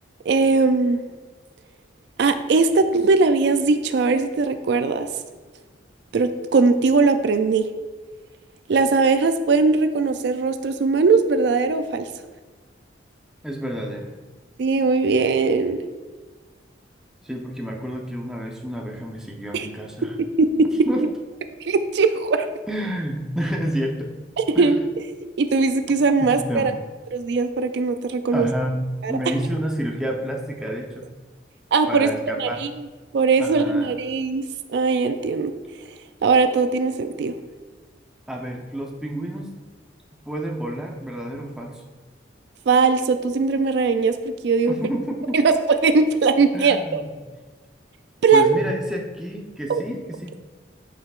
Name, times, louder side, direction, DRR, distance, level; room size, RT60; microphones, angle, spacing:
voice 1, 0.3-1.1 2.2-5.1 6.1-7.7 8.7-12.1 14.6-15.8 19.5-19.7 20.4-20.7 21.6-22.5 24.4-24.8 25.2-26.7 27.1-28.5 29.0-29.1 31.7-32.1 32.4-32.7 33.1-34.4 34.7-35.5 36.2-37.3 42.7-44.2 44.4-44.7 45.3-45.5 45.8-47.0 48.2-48.5 49.7-49.8, right 4 dB, 60° right, 9 dB, 0.4 m, -20 dB
voice 2, 13.4-14.1 17.2-20.1 20.9-21.1 22.7-24.1 24.5-24.8 26.2-26.7 28.3-31.1 31.9-32.6 33.4-33.9 38.3-39.5 40.2-41.8 44.7-45.4 46.5-47.1 48.3-50.4, equal, 5° right, -1 dB, 0.7 m, -29 dB
8.3 x 5.6 x 2.4 m, 1.3 s
head